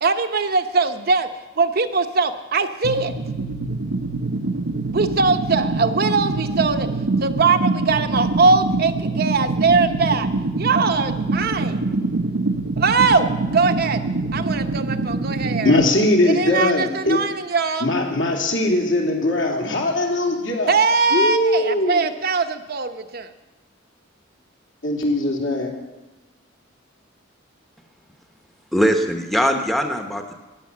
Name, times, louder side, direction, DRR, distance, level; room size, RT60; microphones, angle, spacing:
voice 1, 0.0-1.3 1.6-3.1 4.9-6.9 7.2-10.3 10.5-11.8 12.8-13.3 13.5-14.0 14.3-15.8 16.2-17.9 20.7-23.3, right 4 dB, 50° right, 7 dB, 0.9 m, -21 dB
sound 1, 2.8-15.8, right 2 dB, 80° right, 0.8 m, -24 dB
voice 2, 15.6-17.2 17.8-20.8 21.1-22.1 24.8-25.7, left 1 dB, 70° left, 0 dB, 3.0 m, -20 dB
voice 3, 28.7-30.3, equal, ahead, 5 dB, 0.9 m, -21 dB
14.5 x 10.5 x 7.3 m, 1.1 s
head